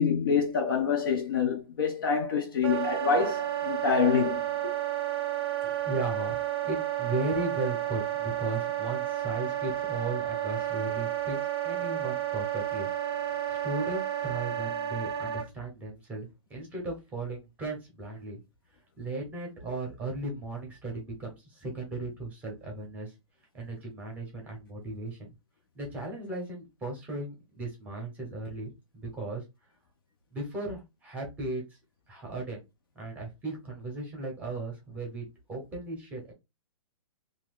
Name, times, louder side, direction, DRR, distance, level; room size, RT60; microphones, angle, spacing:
voice 1, 0.0-4.4, left 6 dB, 40° left, 0.5 m, -26 dB
Wind instrument woodwind instrument, 2.6-15.5, right 11 dB, 45° right, 0.5 m, -31 dB
voice 2, 5.6-11.4 11.6-18.4 19.0-23.1 23.5-25.3 25.7-29.4 30.3-31.6 32.1-32.6 32.9-36.3, right 2 dB, 10° right, 0.8 m, -36 dB
2.7 x 2.3 x 3.5 m
hypercardioid pair, 165°, 18 cm